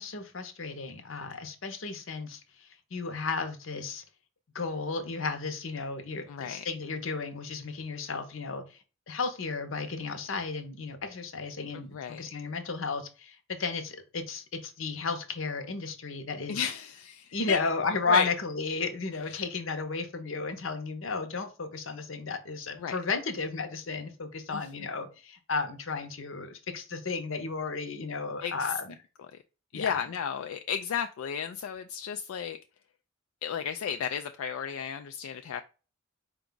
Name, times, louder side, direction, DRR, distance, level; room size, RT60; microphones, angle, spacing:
voice 1, 0.0-4.0 4.5-8.8 9.1-16.6 17.3-28.9 29.7-30.0, left 4 dB, 70° left, 0.8 m, -33 dB
voice 2, 6.3-6.6 11.7-12.3 16.5-17.6 18.1-18.3 19.3-19.4 22.8-23.0 24.5-24.7 28.4-28.8 29.7-32.6 33.4-35.6, left 8 dB, 85° left, 0.3 m, -33 dB
4.8 x 2.3 x 3.7 m
head